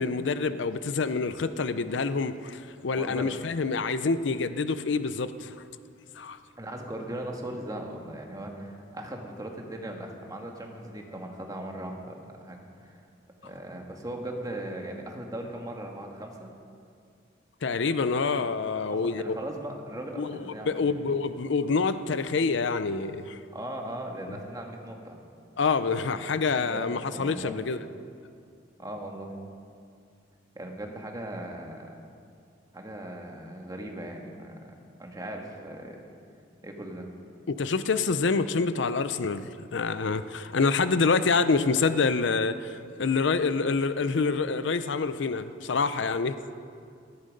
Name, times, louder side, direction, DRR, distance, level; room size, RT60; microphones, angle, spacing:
voice 1, 0.0-5.5 6.2-6.4 17.6-19.4 20.2-20.3 20.7-23.4 25.6-27.8 37.5-46.4, left 4 dB, 70° left, 12 dB, 0.6 m, -27 dB
voice 2, 2.9-3.4 6.6-13.0 13.4-16.5 18.8-21.1 23.5-25.2 26.6-27.6 28.8-29.4 30.5-32.0 32.7-34.7 35.0-36.1 36.6-37.1, right 1 dB, 20° right, 1 dB, 1.7 m, -38 dB
17.0 x 14.0 x 5.3 m, 2.3 s
head